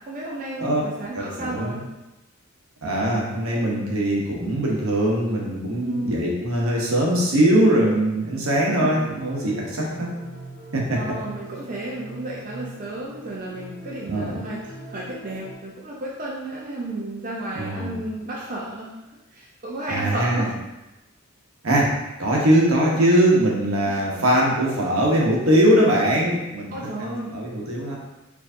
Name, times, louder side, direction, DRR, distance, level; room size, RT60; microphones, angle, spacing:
voice 1, 0.1-1.8 5.8-6.3 8.7-9.0 11.0-18.9 19.3-20.5 23.9-24.0 26.7-27.3, right 1 dB, 40° right, -4 dB, 0.5 m, -32 dB
voice 2, 1.1-1.8 2.8-10.1 10.7-11.0 14.0-14.4 17.5-18.0 19.9-20.5 21.6-21.9 22.2-26.7 27.0-27.9, right 1 dB, 75° right, -3 dB, 1.0 m, -21 dB
sound 1, 8.7-15.5, right 2 dB, 20° right, 1.0 m, -41 dB
4.5 x 2.6 x 2.6 m, 1.0 s
head